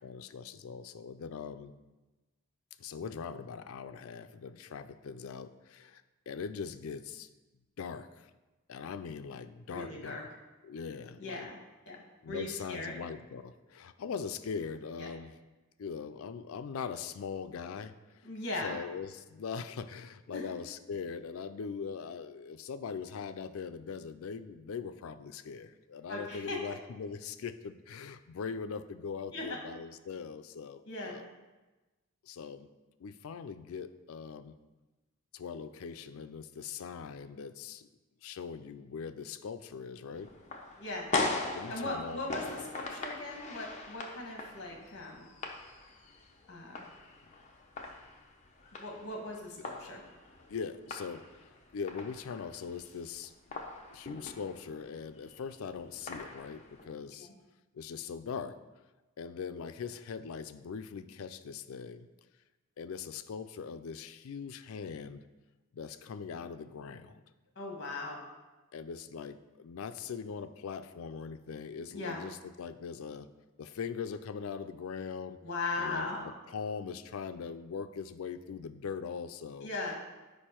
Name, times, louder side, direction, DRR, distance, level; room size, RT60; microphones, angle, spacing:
voice 1, 0.0-1.7 2.8-7.3 7.8-8.3 8.7-10.3 10.6-11.5 12.2-15.4 15.8-18.3 18.6-31.3 32.2-32.7 33.0-34.6 35.3-37.9 38.2-40.3 41.5-42.2 49.6-49.7 50.5-53.6 53.9-57.3 57.7-58.6 59.2-62.1 62.8-65.3 65.7-67.2 68.7-73.3 73.6-75.4 75.8-79.7, left 6 dB, 80° left, 11 dB, 0.4 m, -41 dB
voice 2, 9.7-10.2 11.2-11.6 11.9-12.0 12.3-12.9 15.0-15.1 18.2-18.8 20.3-20.4 26.1-26.6 29.3-29.6 30.8-31.2 40.8-41.1 41.7-45.3 46.5-46.8 48.8-50.0 57.2-57.3 67.5-68.2 71.9-72.2 75.4-76.3 79.6-79.9, left 2 dB, 50° left, 0 dB, 1.4 m, -38 dB
sound 1, 40.2-56.9, left 3 dB, 30° left, 0.7 m, -41 dB
6.4 x 5.2 x 4.4 m, 1.2 s
head